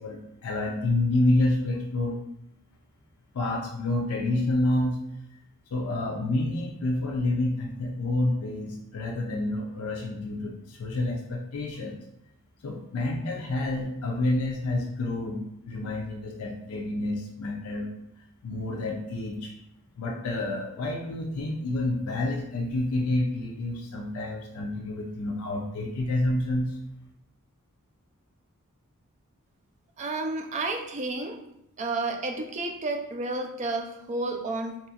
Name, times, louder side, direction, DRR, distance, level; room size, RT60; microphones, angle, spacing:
voice 1, 0.0-2.2 3.3-5.0 5.7-12.0 12.6-17.9 18.4-19.5 20.0-26.8, left 2 dB, 70° left, 0 dB, 0.4 m, -28 dB
voice 2, 30.0-31.4 31.8-34.9, right 2 dB, 30° right, 4 dB, 0.3 m, -31 dB
2.9 x 2.3 x 2.7 m, 0.80 s
head